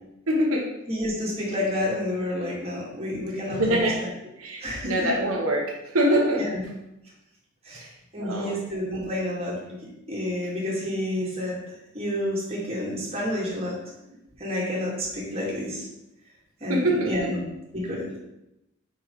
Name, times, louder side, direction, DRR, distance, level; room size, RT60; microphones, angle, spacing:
voice 1, 0.3-0.6 3.6-4.0 4.4-6.4 7.7-7.9 8.2-8.6 16.7-17.1, right 1 dB, 80° right, -2 dB, 1.1 m, -24 dB
voice 2, 0.9-3.9 4.6-5.1 6.4-6.6 7.7-7.8 8.1-9.8 10.1-11.6 11.9-13.8 14.4-15.9 16.6-17.4 17.7-18.0, left 1 dB, 30° right, -5 dB, 2.2 m, -29 dB
5.3 x 4.8 x 5.2 m, 0.89 s
head